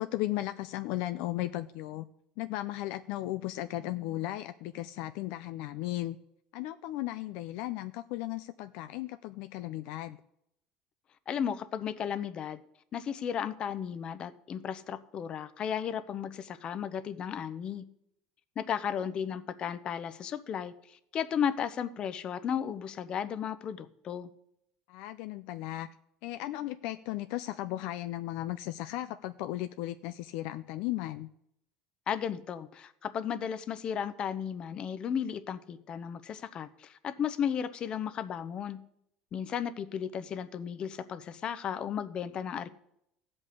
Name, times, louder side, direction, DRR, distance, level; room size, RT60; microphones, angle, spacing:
voice 1, 0.0-2.1 2.4-6.2 6.5-10.2 24.9-25.9 26.2-31.3, left 15 dB, 75° left, 10 dB, 0.5 m, -36 dB
voice 2, 11.3-12.6 12.9-17.8 18.6-24.3 32.1-38.8 39.3-42.7, left 8 dB, 40° left, 12 dB, 0.9 m, -34 dB
14.5 x 5.4 x 8.4 m, 0.77 s
supercardioid pair, 110°, 2 cm